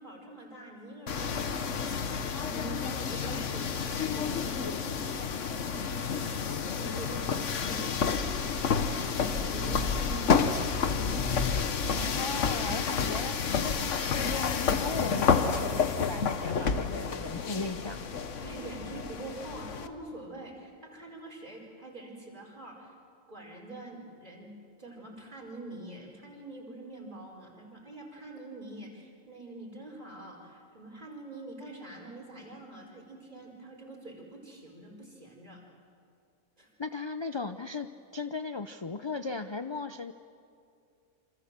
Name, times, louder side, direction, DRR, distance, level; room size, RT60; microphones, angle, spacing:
voice 1, 0.0-10.6 18.4-22.9 23.3-24.5 24.8-35.6 36.6-36.7, right 2 dB, 35° right, -2 dB, 4.9 m, -45 dB
sound 1, 1.1-19.9, left 6 dB, 60° left, 1.4 m, -30 dB
voice 2, 11.9-13.4 13.6-18.1 36.8-37.9 38.1-40.1, left 4 dB, 35° left, 9 dB, 0.4 m, -37 dB
28.0 x 26.0 x 7.5 m, 2.4 s
omnidirectional pair, 1.4 m